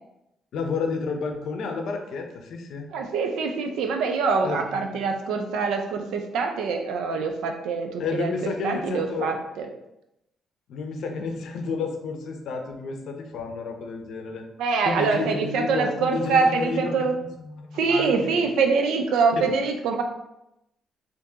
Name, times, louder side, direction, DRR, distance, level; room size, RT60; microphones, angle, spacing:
voice 1, 0.5-2.9 4.4-4.9 8.0-9.3 10.7-14.4 14.8-18.5 19.3-19.5, left 4 dB, 75° left, 4 dB, 0.5 m, -31 dB
voice 2, 2.9-8.3 8.6-9.7 14.6-17.2 17.7-20.0, right 4 dB, 85° right, 4 dB, 0.4 m, -24 dB
3.5 x 2.6 x 2.7 m, 0.86 s
cardioid pair, 90°, 0 cm